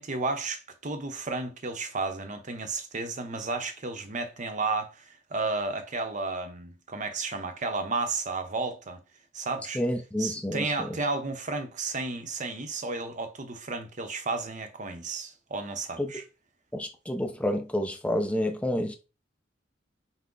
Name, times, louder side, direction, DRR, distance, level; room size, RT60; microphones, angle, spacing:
voice 1, 0.0-5.0 5.3-9.0 9.3-9.8 10.2-16.2, right 3 dB, 40° right, 0.7 m, -32 dB
voice 2, 9.7-11.0 16.0-16.1 16.7-19.0, left 1 dB, 5° left, 0.5 m, -29 dB
5.9 x 2.1 x 3.8 m
head